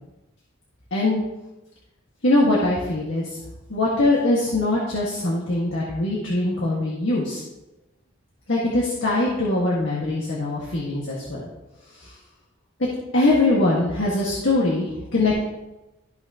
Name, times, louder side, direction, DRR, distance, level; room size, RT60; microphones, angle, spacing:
voice 1, 2.2-3.4 3.7-7.4 8.5-11.5 12.0-12.1 13.1-15.4, left 2 dB, 75° left, -5 dB, 1.7 m, -22 dB
13.5 x 6.0 x 2.9 m, 1.0 s
head